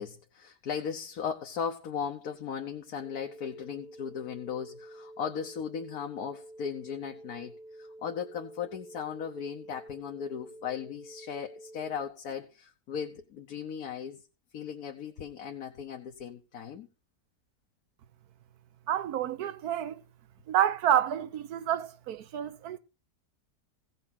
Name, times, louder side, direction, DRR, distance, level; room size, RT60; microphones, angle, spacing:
voice 1, 0.0-14.2 14.5-16.9, left 7 dB, 70° left, 1.5 m, -37 dB
sound 1, 3.0-12.0, right 1 dB, 35° left, 0.9 m, -49 dB
voice 2, 18.9-20.0 20.5-22.8, right 10 dB, 75° right, 1.3 m, -29 dB
16.0 x 6.2 x 5.8 m
omnidirectional pair, 1.7 m